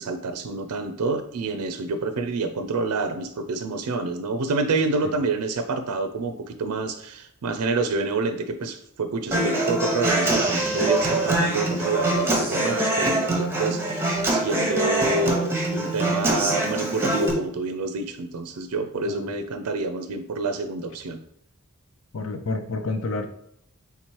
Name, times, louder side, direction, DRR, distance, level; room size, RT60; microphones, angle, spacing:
voice 1, 0.0-21.2, right 3 dB, 85° right, 8 dB, 0.4 m, -28 dB
Human voice / Acoustic guitar, 9.3-17.3, right 1 dB, 10° right, 0.8 m, -24 dB
voice 2, 22.1-23.3, left 3 dB, 60° left, 7 dB, 0.5 m, -29 dB
3.5 x 2.9 x 4.5 m, 0.72 s
head